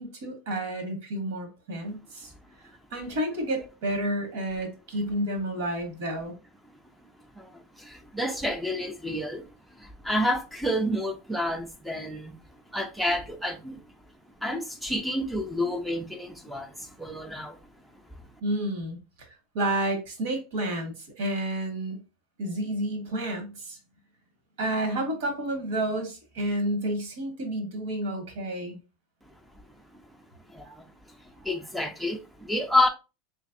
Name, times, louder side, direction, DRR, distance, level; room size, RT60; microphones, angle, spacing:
voice 1, 0.0-2.3 2.9-6.4 18.4-19.3 19.5-22.0 22.4-23.8 24.6-28.8, right 1 dB, 75° right, 1.5 m, -30 dB
voice 2, 7.4-9.4 9.8-12.3 12.7-13.8 14.4-17.6 30.5-30.9 31.4-32.9, left 1 dB, ahead, 0.5 m, -29 dB
3.2 x 3.2 x 2.5 m
supercardioid pair, 145°, 0 cm